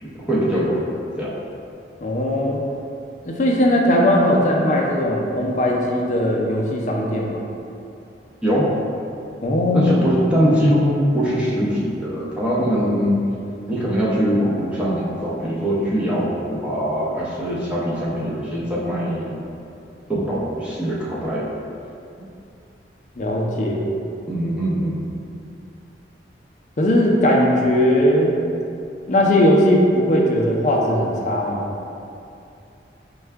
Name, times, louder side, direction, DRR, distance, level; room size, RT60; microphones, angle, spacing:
voice 1, 0.0-0.8 1.2-1.3 8.4-8.7 9.7-13.2 13.7-19.4 20.1-21.5 24.3-25.1, equal, 5° right, -8 dB, 0.6 m, -22 dB
voice 2, 2.0-2.6 3.3-7.4 9.4-9.9 23.2-23.9 26.8-28.3 29.1-31.7, left 1 dB, 40° left, -1 dB, 0.4 m, -18 dB
4.5 x 2.3 x 3.3 m, 2.6 s
head